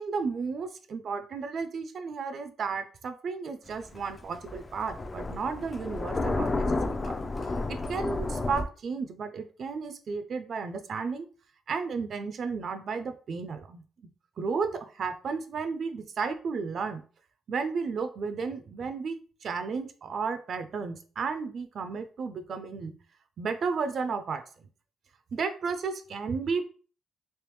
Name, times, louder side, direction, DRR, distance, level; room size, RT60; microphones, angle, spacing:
voice 1, 0.0-7.0 7.7-11.3 11.7-13.8 14.4-17.0 17.5-22.9 23.4-24.4 25.3-26.7, right 5 dB, 55° right, 8 dB, 0.5 m, -33 dB
Thunder, 3.7-8.6, left 2 dB, 30° left, 0.5 m, -31 dB
3.4 x 2.9 x 3.1 m, 0.39 s
cardioid pair, 90°, 0 cm